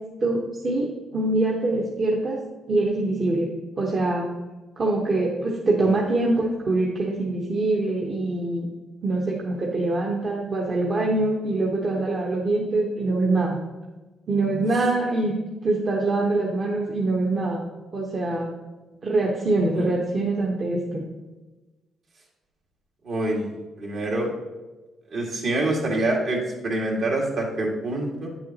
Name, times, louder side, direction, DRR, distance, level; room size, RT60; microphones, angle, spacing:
voice 1, 0.2-2.4 2.7-3.5 3.8-4.3 4.8-8.7 9.0-13.6 14.3-15.3 15.6-17.7 17.9-18.5 19.0-21.0, right 2 dB, 45° right, -2 dB, 1.2 m, -24 dB
voice 2, 23.0-23.5 23.8-24.3 25.1-28.3, right 2 dB, 60° right, -1 dB, 2.1 m, -26 dB
8.9 x 7.1 x 2.9 m, 1.2 s
cardioid pair, 90°, 0 cm